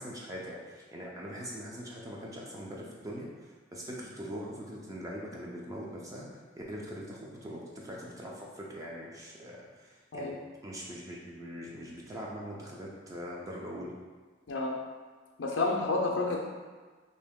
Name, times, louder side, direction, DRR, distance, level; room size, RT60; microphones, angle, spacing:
voice 1, 0.0-10.4 10.6-13.9, equal, 20° right, -3 dB, 0.4 m, -42 dB
voice 2, 15.4-16.4, left 3 dB, 70° left, -1 dB, 0.5 m, -29 dB
3.0 x 2.7 x 3.5 m, 1.4 s
head